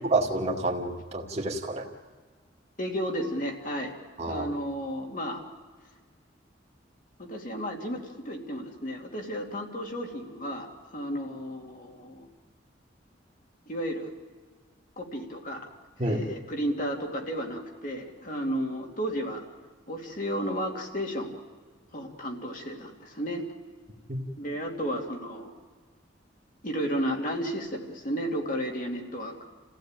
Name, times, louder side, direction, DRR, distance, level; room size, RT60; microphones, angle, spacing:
voice 1, 0.0-1.9 4.2-4.5 16.0-16.2 24.1-24.2, right 2 dB, 35° right, 2 dB, 2.2 m, -28 dB
voice 2, 2.8-3.9 4.3-5.4 7.2-12.3 13.7-14.1 15.0-15.7 16.1-19.4 19.9-21.4 21.9-23.4 24.4-25.5 26.6-29.4, equal, 45° left, 1 dB, 2.8 m, -33 dB
28.5 x 15.5 x 9.0 m, 1.5 s
head